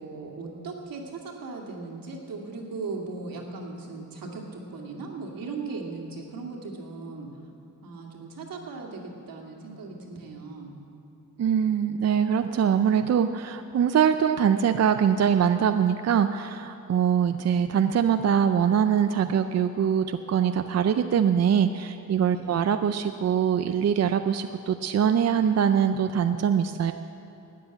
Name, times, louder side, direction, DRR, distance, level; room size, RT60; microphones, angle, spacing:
voice 1, 0.0-7.3 7.8-10.8 22.3-22.5, right 3 dB, 85° right, 0 dB, 2.3 m, -38 dB
voice 2, 11.4-26.9, right 8 dB, 50° right, 8 dB, 0.5 m, -23 dB
13.0 x 9.5 x 8.9 m, 2.9 s
wide cardioid pair, 160°, 34 cm